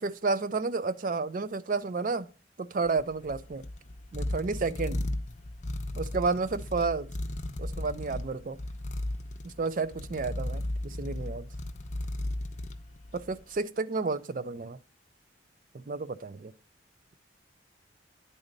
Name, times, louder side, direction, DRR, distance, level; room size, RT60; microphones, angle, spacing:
voice 1, 0.0-2.3 2.6-3.6 4.1-5.0 5.9-7.1 7.6-8.6 9.4-11.5 13.1-14.8 15.7-16.5, right 4 dB, 45° right, 0.4 m, -31 dB
sound 1, 2.8-13.4, left 1 dB, 40° left, 0.6 m, -36 dB
9.9 x 4.0 x 5.2 m
head